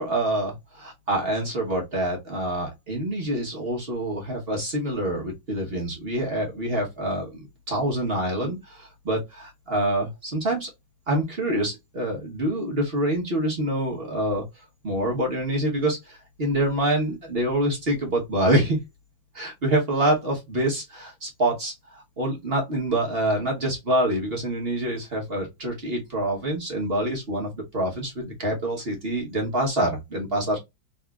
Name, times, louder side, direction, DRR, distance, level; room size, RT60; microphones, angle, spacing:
voice 1, 0.0-10.7 11.1-18.8 19.3-30.6, right 1 dB, 40° right, 0.9 m, -26 dB
3.9 x 2.9 x 2.3 m
omnidirectional pair, 2.2 m